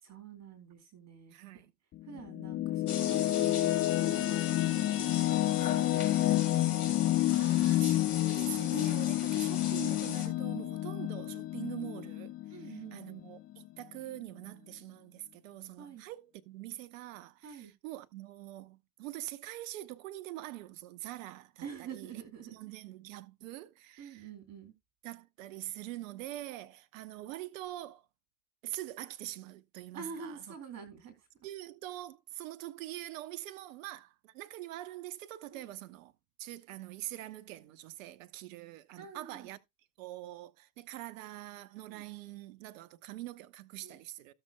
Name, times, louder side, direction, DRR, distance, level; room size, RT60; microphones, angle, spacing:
voice 1, 0.0-1.4 2.0-6.7 10.8-11.0 12.5-13.2 15.8-16.0 17.4-17.7 21.6-22.6 24.0-24.7 29.9-31.3 35.5-35.7 39.0-39.5 41.9-42.0 43.8-44.0, right 6 dB, 35° right, 3.3 m, -48 dB
voice 2, 1.3-1.7 7.3-22.2 22.5-24.3 25.0-28.1 28.6-30.5 31.4-36.1 36.4-39.6 40.0-44.3, right 15 dB, 55° right, 1.1 m, -44 dB
sound 1, 1.9-13.2, left 15 dB, 30° left, 0.8 m, -29 dB
sound 2, 2.9-10.3, left 7 dB, 75° left, 2.9 m, -40 dB
16.5 x 6.9 x 2.3 m
figure-of-eight pair, 75°, 45 cm